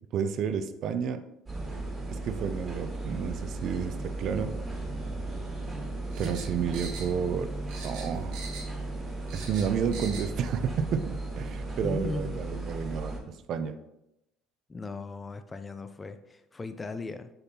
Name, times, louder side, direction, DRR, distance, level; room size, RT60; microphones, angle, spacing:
voice 1, 0.1-1.2 2.1-4.5 6.2-7.5 7.8-8.4 9.3-13.2 13.5-13.8, right 7 dB, 50° right, 10 dB, 0.5 m, -31 dB
sound 1, 1.5-13.2, right 2 dB, 20° right, 1.5 m, -36 dB
sound 2, 6.1-7.4 7.7-8.8 9.1-10.3 10.6-10.7, right 4 dB, 75° right, 1.7 m, -42 dB
voice 2, 11.8-12.4 14.7-17.3, left 3 dB, 15° left, 10 dB, 0.4 m, -37 dB
6.6 x 5.8 x 2.8 m, 0.87 s
cardioid pair, 135°, 0 cm